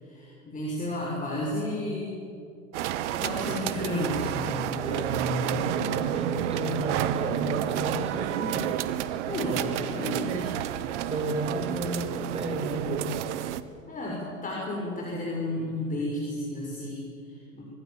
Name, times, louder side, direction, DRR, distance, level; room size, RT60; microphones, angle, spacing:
voice 1, 0.0-2.2 3.2-5.6 9.2-10.6 13.9-17.6, left 1 dB, 20° left, -3 dB, 6.0 m, -32 dB
sound 1, 2.7-13.6, right 12 dB, 55° right, 1.4 m, -30 dB
voice 2, 5.5-8.8 11.1-13.1, right 1 dB, 15° right, 2 dB, 7.0 m, -33 dB
25.0 x 23.5 x 7.4 m, 2.4 s
hypercardioid pair, 95°, 42 cm